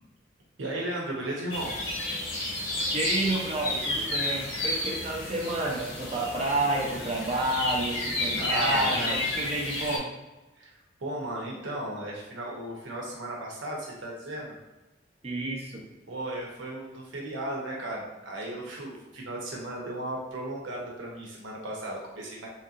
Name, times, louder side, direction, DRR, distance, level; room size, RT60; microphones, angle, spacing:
voice 1, 0.6-1.8 8.3-9.2 10.6-10.7 11.0-14.6 16.1-22.5, right 1 dB, 75° right, -3 dB, 0.9 m, -35 dB
sound 1, 1.5-10.0, left 1 dB, 70° left, 1.1 m, -31 dB
voice 2, 2.9-10.1 15.2-15.8, right 2 dB, 35° right, -1 dB, 0.6 m, -30 dB
3.6 x 2.8 x 2.5 m, 1.1 s
head